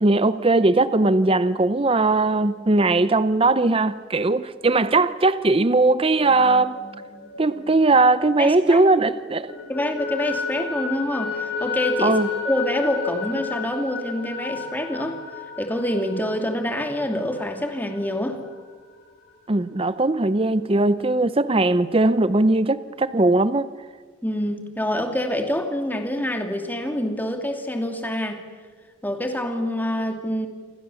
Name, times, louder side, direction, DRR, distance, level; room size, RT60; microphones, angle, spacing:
voice 1, 0.0-6.8 7.4-9.5 12.0-12.3 19.5-23.7, right 2 dB, 30° right, 14 dB, 0.7 m, -19 dB
sound 1, 6.0-8.9 9.2-18.6, left 5 dB, 55° left, 4.6 m, -32 dB
voice 2, 8.4-8.8 9.7-15.2 15.6-18.4 24.2-28.4 29.0-30.5, left 1 dB, 10° left, 5 dB, 2.5 m, -26 dB
28.0 x 25.0 x 7.1 m, 1.5 s
head